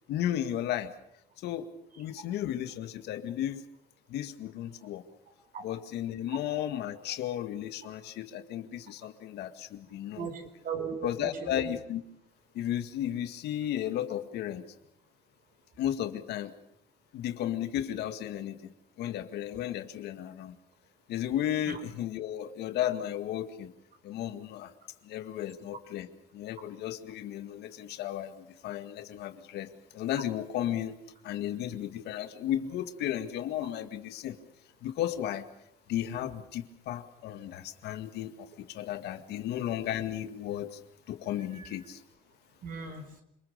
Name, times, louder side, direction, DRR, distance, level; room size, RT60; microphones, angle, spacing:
voice 1, 0.1-0.9 1.4-1.7 2.0-3.6 4.1-5.0 5.6-10.3 11.0-12.0 12.5-14.6 15.8-16.5 17.1-18.7 19.0-20.6 21.1-23.7 24.0-24.7 25.0-26.1 26.3-31.0 31.2-34.4 34.8-35.5 35.9-40.8 41.1-42.0, left 11 dB, 80° left, 8 dB, 2.0 m, -34 dB
voice 2, 10.2-11.7 21.7-21.8 41.5-41.7 42.6-43.0, right 6 dB, 55° right, 7 dB, 5.1 m, -38 dB
27.5 x 20.5 x 6.7 m, 0.73 s
cardioid pair, 110°, 17 cm